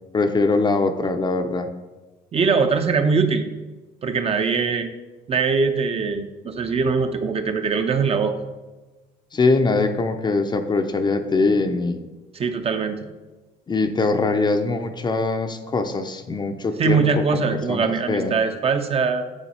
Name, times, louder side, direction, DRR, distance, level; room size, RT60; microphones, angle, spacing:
voice 1, 0.1-1.7 9.3-12.0 13.7-17.1 17.3-18.4, left 3 dB, 25° left, 7 dB, 0.5 m, -22 dB
voice 2, 2.3-3.5 4.0-4.9 5.3-8.3 12.3-13.0 16.8-19.2, right 5 dB, 35° right, 7 dB, 0.6 m, -22 dB
8.9 x 4.0 x 4.2 m, 1.2 s
cardioid pair, 110°, 17 cm